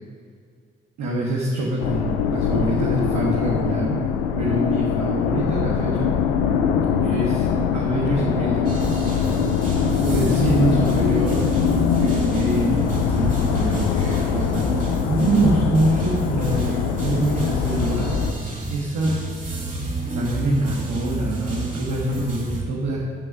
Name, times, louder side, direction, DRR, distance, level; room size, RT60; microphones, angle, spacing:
voice 1, 1.0-4.0 4.4-6.1 7.0-8.8 10.0-11.4 11.9-18.1 18.7-19.1 20.1-23.0, right 2 dB, 70° right, -3 dB, 1.6 m, -25 dB
sound 1, 1.8-18.3, left 7 dB, 90° left, 0.6 m, -22 dB
sound 2, 8.6-22.6, right 2 dB, 25° right, 2.5 m, -29 dB
10.5 x 6.2 x 6.1 m, 2.2 s
hypercardioid pair, 45°, 29 cm